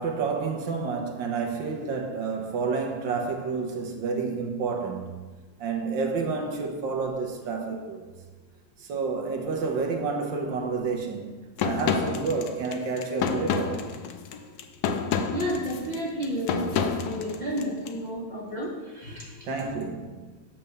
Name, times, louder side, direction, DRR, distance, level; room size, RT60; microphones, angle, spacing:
voice 1, 0.0-5.1 5.6-8.1 8.8-11.3 11.6-13.8 19.5-20.4, right 4 dB, 70° right, 1.5 m, -29 dB
sound 1, 11.6-17.9, left 6 dB, 75° left, 0.9 m, -29 dB
voice 2, 15.3-19.5, equal, 25° left, 1.1 m, -32 dB
8.7 x 3.4 x 6.6 m
omnidirectional pair, 2.2 m